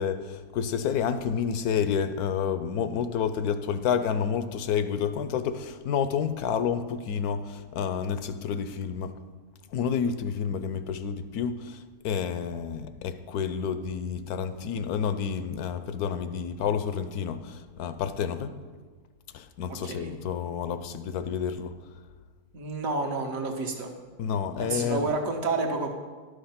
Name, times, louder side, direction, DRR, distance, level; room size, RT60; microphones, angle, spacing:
voice 1, 0.0-9.1 9.7-18.5 19.3-21.7 24.2-25.1, left 7 dB, 80° left, 11 dB, 1.1 m, -29 dB
voice 2, 22.5-23.9 24.6-25.9, right 3 dB, 60° right, 2 dB, 1.6 m, -29 dB
11.5 x 6.6 x 5.8 m, 1.5 s
omnidirectional pair, 1.6 m